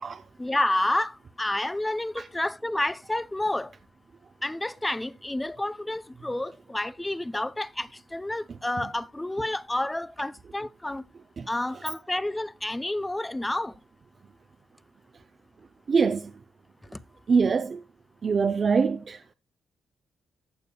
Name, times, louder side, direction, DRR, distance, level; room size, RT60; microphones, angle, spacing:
voice 1, 0.4-3.7 4.4-11.0 11.5-13.7, left 1 dB, 10° left, 0.6 m, -29 dB
voice 2, 15.9-16.3 17.3-17.8 18.2-19.2, right 5 dB, 40° right, 0.7 m, -23 dB
15.5 x 6.8 x 2.3 m
cardioid pair, 90°, 0 cm